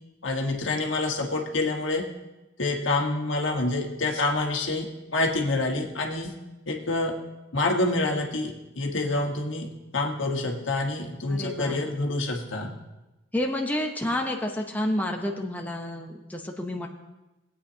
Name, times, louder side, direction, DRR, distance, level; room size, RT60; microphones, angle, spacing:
voice 1, 0.2-2.1 2.6-6.4 6.7-7.2 7.5-9.7 9.9-12.7, left 2 dB, 75° left, 2 dB, 1.4 m, -27 dB
voice 2, 11.3-11.8 13.3-16.9, left 1 dB, 10° left, 1 dB, 0.8 m, -29 dB
20.5 x 8.7 x 2.8 m, 1.0 s
head